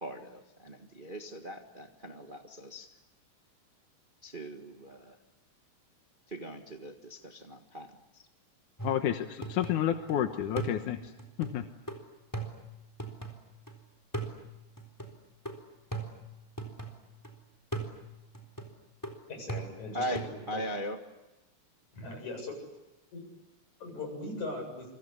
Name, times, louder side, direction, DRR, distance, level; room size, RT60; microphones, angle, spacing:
voice 1, 0.0-2.9 4.2-5.1 6.3-8.2 19.9-21.0, equal, 25° right, 4 dB, 1.2 m, -40 dB
voice 2, 8.8-11.1 11.4-11.6, left 10 dB, 85° left, 7 dB, 2.7 m, -30 dB
sound 1, 8.8-10.1 10.6-13.7 14.1-17.3 17.7-20.4, right 2 dB, 5° left, 3.5 m, -41 dB
voice 3, 19.3-20.2 20.5-20.6 21.9-22.6 23.1-23.2 23.8-24.9, left 2 dB, 70° left, 3 dB, 9.1 m, -39 dB
28.0 x 25.5 x 8.4 m, 0.99 s
omnidirectional pair, 3.5 m